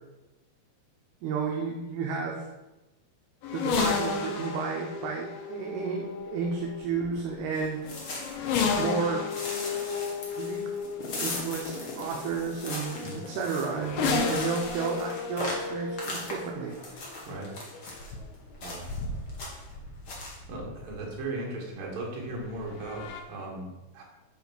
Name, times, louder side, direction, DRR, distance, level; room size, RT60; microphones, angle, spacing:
voice 1, 1.2-2.4 3.5-7.8 8.7-9.2 10.4-10.6 11.2-13.0 13.3-16.8, right 5 dB, 75° right, 0 dB, 2.7 m, -32 dB
sound 1, 3.4-21.2 22.3-23.2, left 5 dB, 70° left, 2.1 m, -33 dB
sound 2, 7.5-8.9 9.3-18.1 18.6-19.0 19.3-19.7 20.1-20.4, left 2 dB, 50° left, 1.7 m, -39 dB
voice 2, 17.3-17.6 18.6-18.9 20.5-24.0, right 2 dB, 60° right, -2 dB, 3.4 m, -37 dB
9.7 x 4.5 x 6.0 m, 1.0 s
omnidirectional pair, 5.0 m